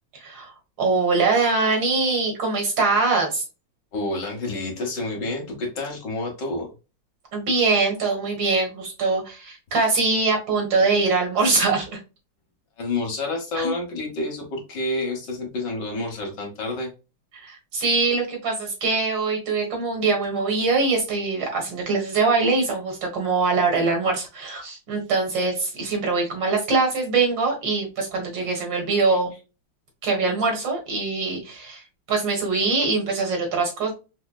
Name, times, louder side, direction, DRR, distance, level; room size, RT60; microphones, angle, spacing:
voice 1, 0.1-3.4 7.3-11.9 13.5-13.7 17.3-29.3 30.0-33.9, right 3 dB, 70° right, 2 dB, 2.1 m, -23 dB
voice 2, 3.9-6.7 12.8-16.9 28.4-28.5 29.1-29.2, left 2 dB, 65° left, 0 dB, 1.8 m, -29 dB
5.6 x 2.1 x 2.2 m, 0.29 s
omnidirectional pair, 2.1 m